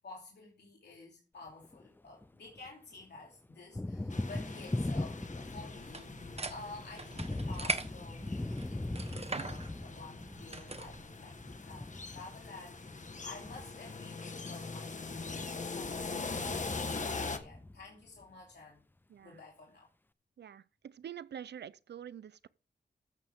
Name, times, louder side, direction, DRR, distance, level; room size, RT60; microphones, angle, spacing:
voice 1, 0.0-18.8 19.2-19.9, left 3 dB, 75° left, 3.0 m, -51 dB
Thunder, 1.5-2.7 3.0-18.2, left 2 dB, 10° left, 0.5 m, -41 dB
sound 1, 4.1-17.4, left 4 dB, 45° left, 1.4 m, -42 dB
sound 2, 5.8-11.0, right 3 dB, 35° right, 1.3 m, -41 dB
voice 2, 19.1-19.4 20.4-22.5, right 9 dB, 80° right, 0.6 m, -46 dB
13.5 x 8.6 x 3.6 m
cardioid pair, 70°, 17 cm